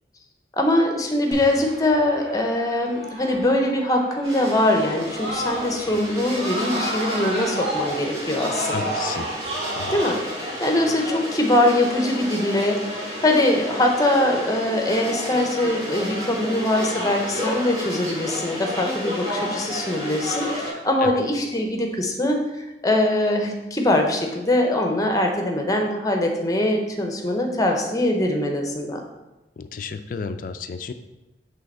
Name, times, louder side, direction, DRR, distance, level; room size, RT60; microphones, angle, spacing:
voice 1, 0.6-8.9 9.9-29.0, left 1 dB, 20° left, 2 dB, 0.7 m, -22 dB
Screaming, 1.3-5.9 6.3-10.1, right 1 dB, 70° right, 1.5 m, -31 dB
sound 1, 4.2-20.7, equal, 25° right, 2.2 m, -32 dB
voice 2, 8.7-9.3 9.8-10.0 21.0-21.1 29.6-30.9, left 5 dB, 50° left, 10 dB, 0.3 m, -32 dB
5.5 x 3.4 x 5.4 m, 1.0 s
head